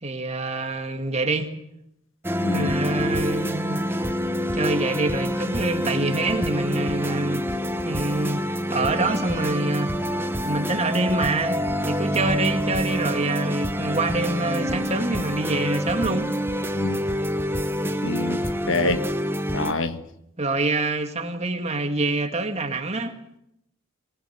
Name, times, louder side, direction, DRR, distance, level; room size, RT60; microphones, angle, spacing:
voice 1, 0.0-1.5 2.5-3.8 4.5-8.4 8.7-9.9 10.4-16.3 20.4-23.4, right 2 dB, 30° right, 2.2 m, -26 dB
sound 1, 2.2-19.7, equal, 10° right, 1.1 m, -27 dB
voice 2, 18.0-19.1 19.5-20.0, left 2 dB, 60° left, 1.4 m, -26 dB
24.5 x 17.5 x 8.7 m
head